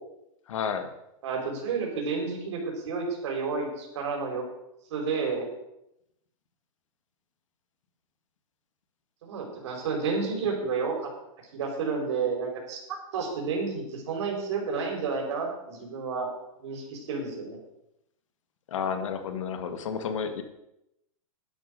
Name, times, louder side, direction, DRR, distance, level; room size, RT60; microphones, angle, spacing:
voice 1, 0.5-0.9 18.7-20.4, left 6 dB, 65° left, 8 dB, 1.8 m, -31 dB
voice 2, 1.2-4.4 4.9-5.5 9.2-10.9 11.5-16.3 16.6-17.6, right 5 dB, 55° right, 1 dB, 4.9 m, -31 dB
11.5 x 11.0 x 6.6 m, 0.84 s
supercardioid pair, 170°, 17 cm